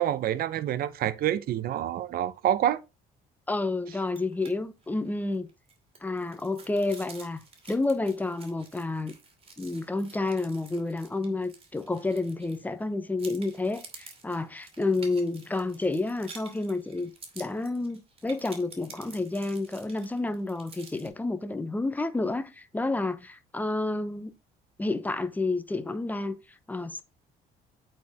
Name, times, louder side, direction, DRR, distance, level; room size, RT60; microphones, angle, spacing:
voice 1, 0.0-2.8, right 11 dB, 60° right, 0.7 m, -27 dB
voice 2, 3.5-5.5 6.0-9.2 9.6-17.1 17.4-24.3 24.8-26.4 26.7-27.0, left 2 dB, 10° left, 0.8 m, -30 dB
sound 1, 4.1-4.5 4.8-5.0 5.3-12.8 13.2-21.1, right 4 dB, 35° right, 2.6 m, -50 dB
8.5 x 4.4 x 3.5 m
cardioid pair, 110°, 17 cm